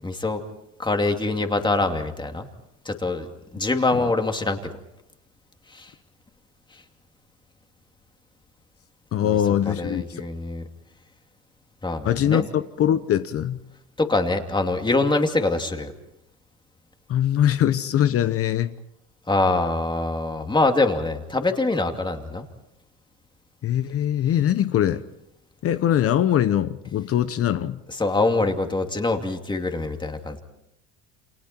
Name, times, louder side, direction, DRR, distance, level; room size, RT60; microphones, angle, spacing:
voice 1, 0.0-0.4 0.8-2.5 2.8-4.6 5.7-5.9 6.7-6.8 9.2-9.4 9.7-10.6 11.8-12.5 14.0-15.9 19.3-22.5 28.0-30.4, left 2 dB, 15° left, 5 dB, 2.6 m, -24 dB
voice 2, 9.1-10.2 12.0-13.6 17.1-18.7 23.6-25.0 25.6-27.8, left 10 dB, 40° left, 13 dB, 0.9 m, -22 dB
29.0 x 27.0 x 4.5 m, 0.83 s
supercardioid pair, 110°, 35 cm